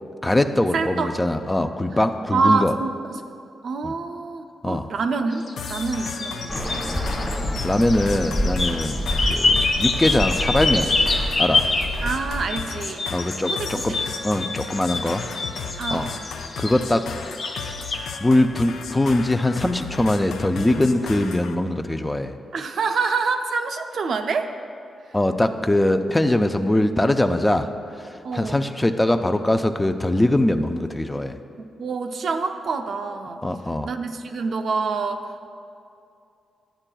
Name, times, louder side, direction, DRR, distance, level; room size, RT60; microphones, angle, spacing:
voice 1, 0.2-2.7 3.8-3.9 4.6-4.9 7.6-10.9 11.4-11.6 13.1-13.9 14.2-15.2 15.9-16.1 16.6-17.1 18.2-22.4 25.1-27.7 28.0-31.4 33.4-33.9, left 1 dB, 15° left, 7 dB, 0.4 m, -22 dB
voice 2, 0.7-1.1 1.9-2.1 2.3-3.2 3.6-6.8 12.0-13.1 13.5-14.0 15.8-16.3 22.5-24.5 28.2-28.6 31.6-33.4 33.8-35.5, right 4 dB, 70° right, 6 dB, 0.5 m, -26 dB
sound 1, 5.3-12.1 12.5-18.0, left 3 dB, 60° left, 0.8 m, -26 dB
sound 2, 5.6-21.6, left 5 dB, 85° left, 0.4 m, -35 dB
Bird, 6.5-12.6, equal, 5° right, 0.9 m, -28 dB
11.5 x 8.8 x 2.3 m, 2.6 s
cardioid pair, 85°, 0 cm